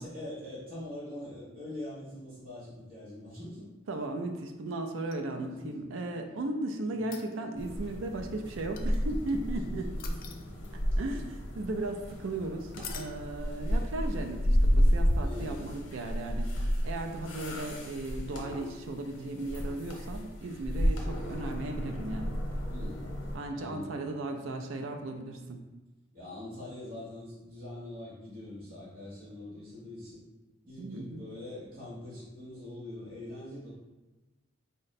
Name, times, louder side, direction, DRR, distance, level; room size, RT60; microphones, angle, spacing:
voice 1, 0.0-3.7 5.4-5.7 6.8-6.9 9.5-10.6 15.2-15.7 22.7-23.1 23.5-24.1 26.1-30.2 30.6-33.7, left 1 dB, 50° right, -9 dB, 1.1 m, -43 dB
voice 2, 3.9-9.9 11.0-16.5 16.8-22.4 23.3-25.6 30.8-31.3, right 2 dB, 75° right, 4 dB, 0.4 m, -36 dB
sound 1, 5.0-5.7 7.0-7.7 8.8-9.3 10.0-10.9 12.7-13.2 15.4-15.5, left 7 dB, 45° left, 0.4 m, -45 dB
sound 2, 7.5-23.4, equal, 85° left, 0.8 m, -31 dB
3.8 x 2.1 x 4.0 m, 1.1 s
head